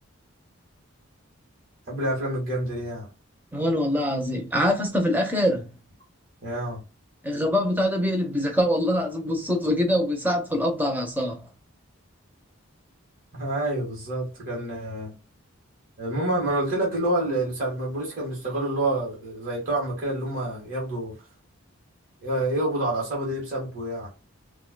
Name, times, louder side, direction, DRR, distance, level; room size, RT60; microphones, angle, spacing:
voice 1, 1.9-3.1 6.4-6.8 13.3-15.1 16.0-21.2 22.2-24.1, right 1 dB, 40° right, 1.6 m, -28 dB
voice 2, 3.5-5.7 7.2-11.5, equal, 10° right, 0.8 m, -24 dB
5.5 x 2.4 x 2.2 m
head